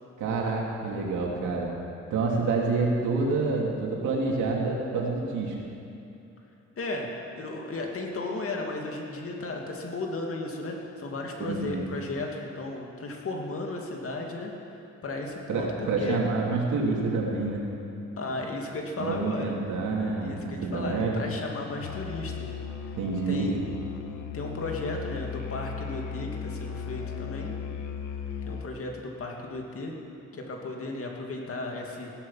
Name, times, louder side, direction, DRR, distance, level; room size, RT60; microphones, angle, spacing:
voice 1, 0.2-1.7 2.1-5.5 11.4-11.9 15.5-17.6 19.0-21.2 23.0-23.5, right 3 dB, 80° right, -2 dB, 2.9 m, -28 dB
voice 2, 6.8-7.1 7.4-14.5 15.0-16.2 18.2-19.5 20.2-22.5 22.9-23.0 23.3-23.6 24.3-27.5 28.4-29.9 30.3-32.1, left 2 dB, 50° left, 1 dB, 2.4 m, -35 dB
Musical instrument, 21.8-28.8, left 6 dB, 75° left, 1.1 m, -36 dB
16.5 x 11.5 x 5.7 m, 2.7 s
cardioid pair, 90°, 30 cm